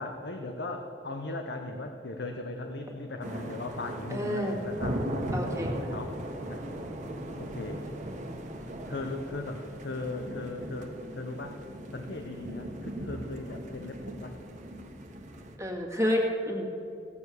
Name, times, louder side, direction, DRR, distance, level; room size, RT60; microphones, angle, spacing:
voice 1, 0.0-5.0 5.9-6.2 6.5-6.6 7.4-7.8 8.9-11.6 11.9-14.3, left 2 dB, 65° left, 4 dB, 0.9 m, -38 dB
sound 1, 3.2-15.6, right 1 dB, 45° right, 1.3 m, -38 dB
voice 2, 4.1-4.5 5.3-5.9 15.6-16.7, equal, 15° right, 0 dB, 2.0 m, -29 dB
17.0 x 7.0 x 8.2 m, 3.0 s
head